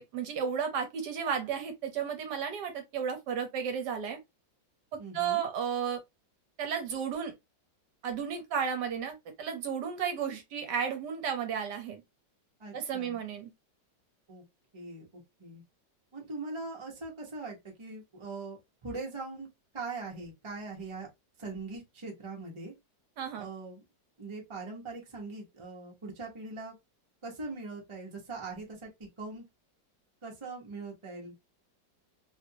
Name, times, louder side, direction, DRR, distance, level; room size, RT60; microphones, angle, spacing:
voice 1, 0.0-4.2 4.9-6.0 6.6-7.3 8.0-12.0 12.7-13.5 23.2-23.5, right 7 dB, 70° right, 1.3 m, -33 dB
voice 2, 5.0-5.4 12.6-13.2 14.3-14.4 14.7-15.1 15.4-15.6 16.1-19.5 19.7-21.1 21.4-22.7 23.3-23.8 24.2-26.7 27.2-29.4 30.2-31.3, right 3 dB, 20° right, 0.8 m, -41 dB
3.1 x 2.5 x 2.7 m
omnidirectional pair, 2.0 m